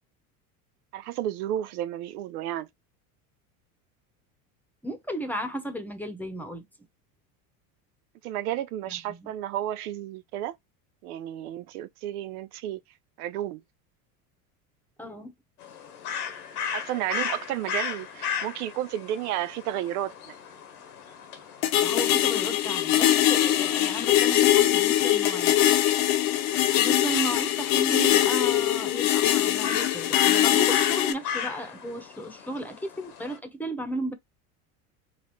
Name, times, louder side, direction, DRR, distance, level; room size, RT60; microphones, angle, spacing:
voice 1, 0.9-2.7 8.2-10.6 11.0-12.8 13.2-13.6 16.7-20.3, right 12 dB, 85° right, 0.5 m, -32 dB
voice 2, 4.8-6.6 8.9-9.0 9.2-9.3 15.0-15.3 21.8-25.5 26.8-34.1, equal, 5° left, 0.9 m, -34 dB
sound 1, 15.6-33.4, left 7 dB, 90° left, 1.1 m, -37 dB
sound 2, 21.6-31.1, left 13 dB, 70° left, 0.8 m, -22 dB
4.0 x 2.5 x 3.1 m
supercardioid pair, 95°, 44 cm